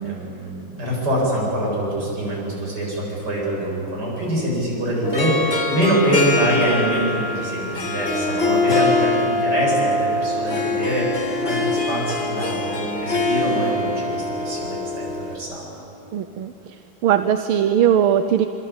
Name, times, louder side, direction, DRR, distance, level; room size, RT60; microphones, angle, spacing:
voice 1, 0.0-15.8, right 1 dB, 50° right, -4 dB, 8.7 m, -24 dB
Harp, 5.0-15.4, left 2 dB, 30° left, 1.8 m, -23 dB
voice 2, 16.1-18.5, right 9 dB, 85° right, 9 dB, 1.7 m, -20 dB
26.0 x 25.0 x 8.8 m, 3.0 s
omnidirectional pair, 2.3 m